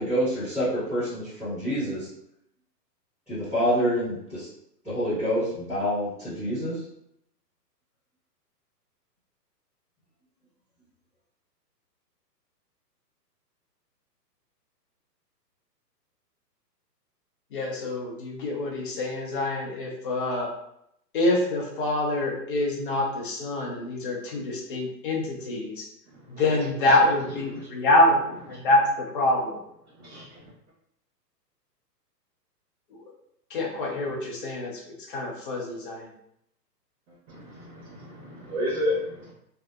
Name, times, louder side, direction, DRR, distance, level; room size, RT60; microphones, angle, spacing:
voice 1, 0.0-2.1 3.3-4.5 4.8-6.8, equal, 5° right, -15 dB, 1.0 m, -27 dB
voice 2, 17.5-20.5 21.1-25.8 26.3-29.6 32.9-33.0 33.5-36.1, left 1 dB, 35° left, -2 dB, 0.5 m, -26 dB
voice 3, 30.0-30.5 37.3-39.3, left 1 dB, 60° right, -8 dB, 0.9 m, -32 dB
2.7 x 2.0 x 2.2 m, 0.76 s
hypercardioid pair, 140°, 50 cm